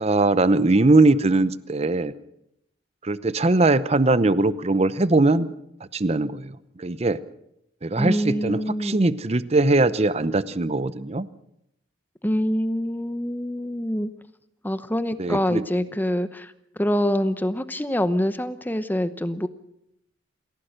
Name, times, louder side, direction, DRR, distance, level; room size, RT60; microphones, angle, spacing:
voice 1, 0.0-2.1 3.0-5.5 5.9-7.2 7.8-11.3 15.2-15.6, right 2 dB, 35° right, 15 dB, 0.7 m, -21 dB
voice 2, 7.9-9.0 12.2-14.1 14.6-16.5 16.8-19.5, equal, 10° left, 12 dB, 0.8 m, -25 dB
27.5 x 16.5 x 6.6 m, 0.81 s
head